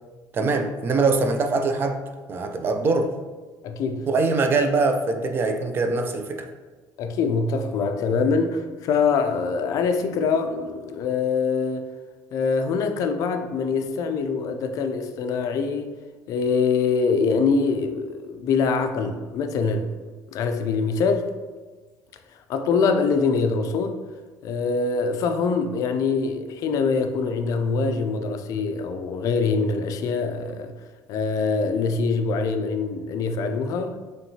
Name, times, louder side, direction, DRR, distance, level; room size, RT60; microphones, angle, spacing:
voice 1, 0.3-2.0 2.3-3.1 4.1-6.5, right 3 dB, 30° right, 0.3 m, -23 dB
voice 2, 3.6-4.1 7.0-11.8 12.3-15.9 16.3-19.9 20.3-21.3 22.5-24.0 24.4-30.7 31.1-34.0, left 4 dB, 50° left, 0.4 m, -24 dB
4.4 x 3.1 x 2.7 m
cardioid pair, 145°, 7 cm